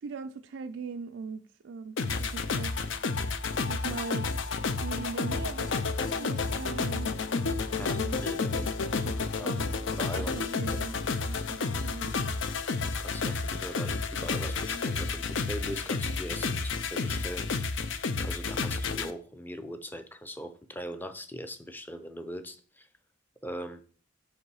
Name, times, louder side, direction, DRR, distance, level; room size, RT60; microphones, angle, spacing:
voice 1, 0.0-3.0 3.7-4.3 4.8-7.1 7.8-8.2 8.8-9.6 10.1-11.0 11.3-12.2, right 5 dB, 65° right, 0.4 m, -40 dB
sound 1, 2.0-19.1, left 4 dB, 65° left, 0.5 m, -31 dB
voice 2, 7.8-8.7 9.4-9.5 10.0-10.4 10.7-10.8 12.9-17.8 18.2-22.9 23.4-23.8, equal, 10° left, 0.5 m, -41 dB
5.9 x 5.4 x 4.8 m
head